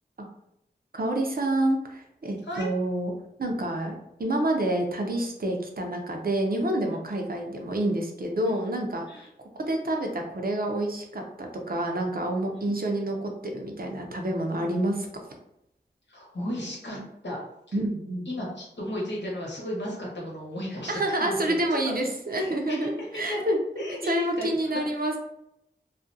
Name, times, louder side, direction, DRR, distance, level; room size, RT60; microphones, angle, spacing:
voice 1, 0.9-3.1 3.4-9.3 9.6-15.3 17.7-18.3 20.9-25.2, right 1 dB, 55° right, 2 dB, 0.5 m, -28 dB
voice 2, 16.1-17.4 17.7-17.8 18.3-21.5 22.0-23.4 23.8-24.6 25.0-25.1, left 1 dB, 80° left, -4 dB, 0.9 m, -35 dB
2.4 x 2.2 x 2.6 m, 0.81 s
wide cardioid pair, 40°, 18 cm